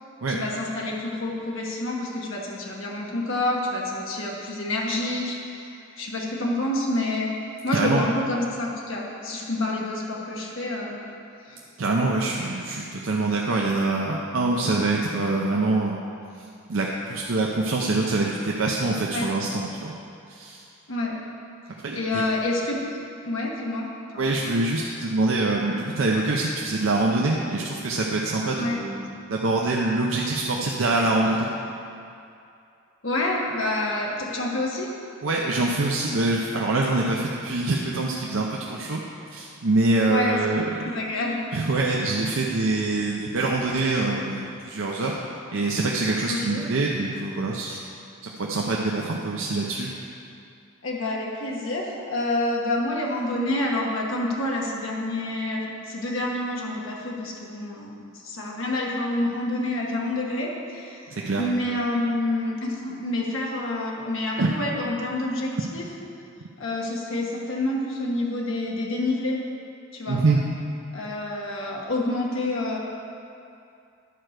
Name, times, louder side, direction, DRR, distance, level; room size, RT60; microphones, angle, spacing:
voice 1, 0.3-7.4 7.6-11.0 11.4-11.6 19.1-19.3 20.9-21.2 21.9-22.8 23.2-24.4 28.6-28.8 33.0-34.9 40.1-40.4 40.7-41.4 46.3-46.6 50.8-57.9 58.2-65.8 66.6-69.4 69.9-70.2 70.9-72.8, left 1 dB, 70° left, -2 dB, 1.3 m, -28 dB
voice 2, 7.7-8.1 11.8-16.0 16.7-19.9 20.3-20.6 21.8-22.2 24.2-29.0 29.3-31.5 35.2-40.9 41.5-47.8 48.2-49.9 61.1-61.4 64.4-64.5 70.1-70.4, right 2 dB, 65° right, -2 dB, 0.6 m, -25 dB
11.0 x 4.5 x 6.5 m, 2.6 s
head